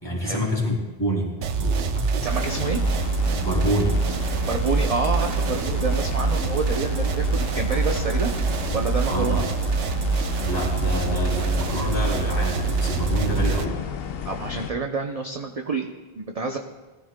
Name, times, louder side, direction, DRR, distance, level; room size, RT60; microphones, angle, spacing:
voice 1, 0.0-2.2 3.4-4.0 9.1-9.4 10.4-13.8, equal, 20° left, -4 dB, 3.2 m, -27 dB
sound 1, 1.4-13.7, right 4 dB, 80° right, 1.0 m, -25 dB
voice 2, 2.2-2.8 4.5-8.3 8.7-9.4 14.2-16.6, right 4 dB, 40° right, 3 dB, 0.7 m, -28 dB
sound 2, 2.3-14.7, left 6 dB, 65° left, 0.8 m, -33 dB
20.5 x 14.0 x 2.2 m, 1.2 s
omnidirectional pair, 1.2 m